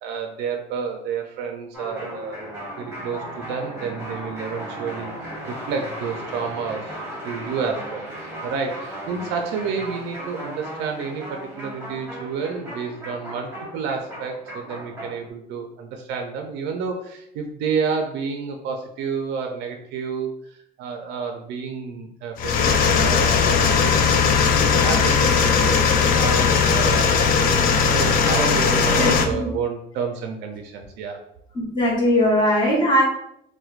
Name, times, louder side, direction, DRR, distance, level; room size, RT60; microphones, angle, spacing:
voice 1, 0.0-5.1 5.5-7.0 7.2-31.2, right 5 dB, 80° right, 3 dB, 0.4 m, -30 dB
sound 1, 1.7-15.3, right 1 dB, 15° right, 1.0 m, -36 dB
sound 2, 22.4-29.3, left 6 dB, 55° left, 0.4 m, -18 dB
voice 2, 29.0-29.5 31.5-33.0, equal, 25° left, -5 dB, 1.1 m, -20 dB
4.3 x 2.2 x 2.4 m, 0.76 s
cardioid pair, 145°, 18 cm